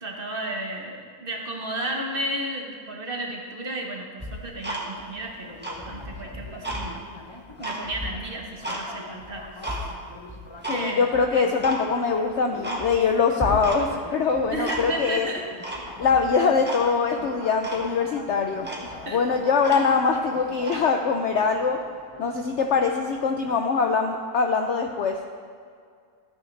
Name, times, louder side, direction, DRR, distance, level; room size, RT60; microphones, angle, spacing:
voice 1, 0.0-5.6 5.8-7.1 7.6-9.7 10.7-11.4 14.5-15.4 19.0-19.2 19.7-19.8, right 1 dB, 40° right, 0 dB, 1.1 m, -33 dB
Tick-tock, 4.2-5.2 5.5-6.8 7.3-8.8 9.2-9.8 10.3-10.8 11.1-11.2 11.6-11.8 12.2-12.3 12.6-13.1 13.4-14.0 14.3-15.1 15.6-16.2 16.6-16.8 17.2-17.3 17.6-17.9 18.3-18.4 18.6-20.1 20.6-20.8, right 1 dB, 5° right, 1.2 m, -33 dB
sound 1, 5.4-23.6, left 2 dB, 50° left, 0.3 m, -44 dB
voice 2, 10.7-15.3 16.0-18.7 19.1-21.8 22.2-25.2, left 5 dB, 70° left, 4 dB, 0.7 m, -23 dB
13.5 x 9.2 x 3.2 m, 2.1 s
omnidirectional pair, 1.7 m